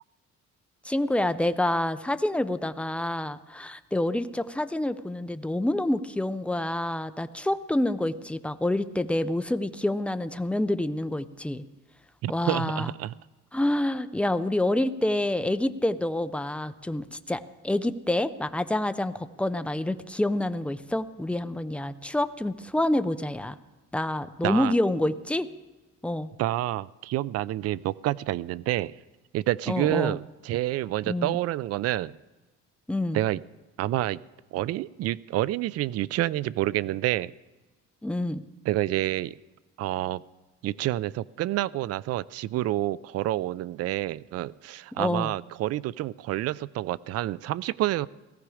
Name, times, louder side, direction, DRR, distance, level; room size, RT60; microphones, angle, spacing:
voice 1, 0.8-11.6 12.3-12.9 13.5-23.6 23.9-25.5 26.0-26.3 29.7-30.2 31.1-31.4 32.9-33.2 38.0-38.4 45.0-45.3, left 1 dB, 5° left, 11 dB, 0.5 m, -27 dB
voice 2, 12.2-13.1 24.4-24.7 26.4-28.9 29.3-32.2 33.1-33.4 33.8-34.2 34.5-37.3 38.7-39.4 39.8-40.2 40.6-48.1, right 15 dB, 55° right, 21 dB, 0.4 m, -28 dB
18.0 x 14.5 x 4.9 m, 1.2 s
cardioid pair, 145°, 29 cm